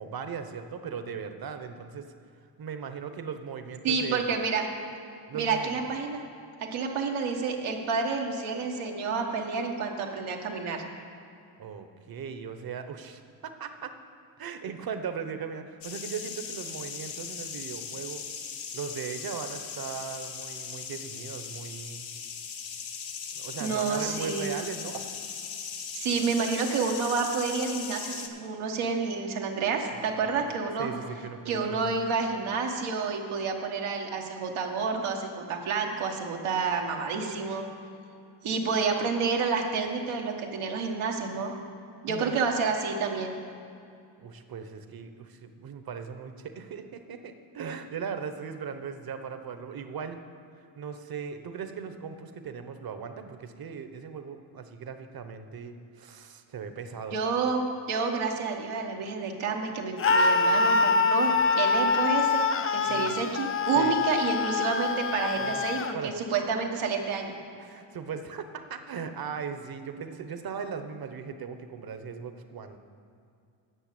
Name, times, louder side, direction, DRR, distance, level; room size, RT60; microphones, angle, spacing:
voice 1, 0.0-2.1 2.6-4.2 5.3-5.7 11.6-13.9 14.4-18.2 18.7-22.1 23.3-25.1 29.9-30.5 30.8-31.9 42.1-42.4 44.2-50.2 50.8-57.2 62.9-63.1 63.7-63.9 65.4-65.6 65.9-66.1 67.6-72.8, right 6 dB, 50° right, 8 dB, 1.0 m, -38 dB
voice 2, 3.8-4.7 5.3-6.2 6.6-10.8 23.6-24.5 25.9-30.9 31.5-37.7 38.4-41.5 42.0-43.4 57.1-62.5 62.7-67.3, right 5 dB, 90° right, 1 dB, 1.4 m, -29 dB
sound 1, 15.8-28.3, left 6 dB, 70° left, 1.1 m, -39 dB
Screaming, 60.0-65.9, left 4 dB, 30° left, 0.5 m, -25 dB
9.1 x 6.4 x 8.4 m, 2.5 s
cardioid pair, 85°, 47 cm